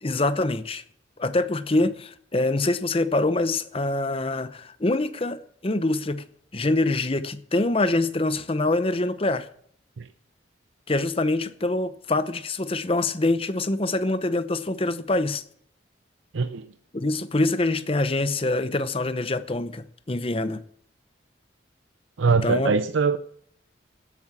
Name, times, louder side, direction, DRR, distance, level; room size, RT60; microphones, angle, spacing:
voice 1, 0.0-0.8 1.2-6.2 6.5-9.5 10.9-15.4 16.9-20.6 22.3-22.8, left 2 dB, 30° left, 0.8 m, -25 dB
voice 2, 16.3-16.7 22.2-23.2, right 5 dB, 90° right, 0.6 m, -22 dB
13.0 x 8.5 x 7.3 m
head